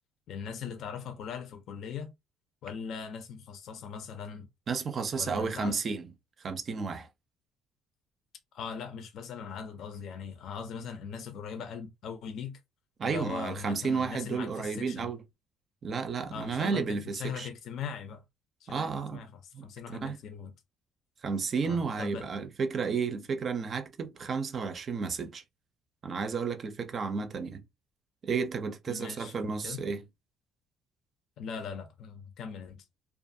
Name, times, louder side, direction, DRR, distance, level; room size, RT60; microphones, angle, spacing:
voice 1, 0.3-2.1 2.6-4.5 5.2-5.8 8.5-12.6 13.0-15.1 16.3-16.9 17.1-18.2 18.6-19.3 19.6-20.5 21.6-22.2 28.9-29.8 31.4-32.8, left 6 dB, 60° left, 0.5 m, -40 dB
voice 2, 4.7-6.1 6.4-7.1 13.0-15.2 15.8-17.5 18.7-19.2 19.5-19.6 19.9-20.2 21.2-25.4 26.0-27.6 28.2-30.0, right 5 dB, 40° right, 0.5 m, -32 dB
2.5 x 2.4 x 2.6 m
cardioid pair, 125°, 0 cm